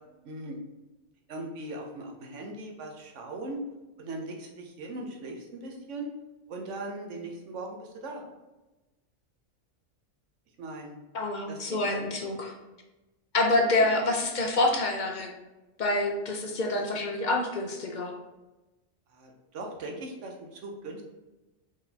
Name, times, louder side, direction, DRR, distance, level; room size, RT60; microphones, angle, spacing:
voice 1, 0.2-0.6 1.3-3.6 4.0-6.1 6.5-8.2 10.6-11.0 11.5-12.3 13.7-13.9 19.1-21.0, right 2 dB, 75° right, 1 dB, 1.1 m, -39 dB
voice 2, 11.1-12.5 13.3-15.3 15.8-18.1, left 2 dB, 50° left, 2 dB, 0.6 m, -27 dB
4.7 x 3.9 x 2.8 m, 1.1 s
omnidirectional pair, 1.3 m